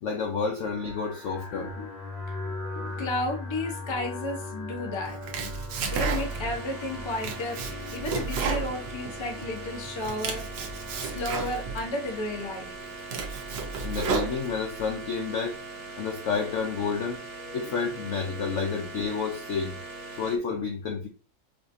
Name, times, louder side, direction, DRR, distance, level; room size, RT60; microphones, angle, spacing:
voice 1, 0.0-1.7 13.8-15.6 16.0-17.2 17.5-19.8 20.1-21.1, left 5 dB, 80° left, 0.6 m, -30 dB
sound 1, 0.6-20.3, left 2 dB, 50° left, 0.9 m, -42 dB
voice 2, 1.5-1.9 2.3-5.5 5.9-12.7 17.6-17.7, left 2 dB, 30° left, 0.5 m, -33 dB
Domestic sounds home sounds, 5.1-6.6 6.9-9.5 9.8-11.8 12.4-12.5 12.9-14.8, right 5 dB, 85° right, 1.4 m, -32 dB
sound 2, 5.8-20.4, right 3 dB, 40° right, 1.1 m, -41 dB
5.0 x 2.5 x 2.6 m
omnidirectional pair, 2.0 m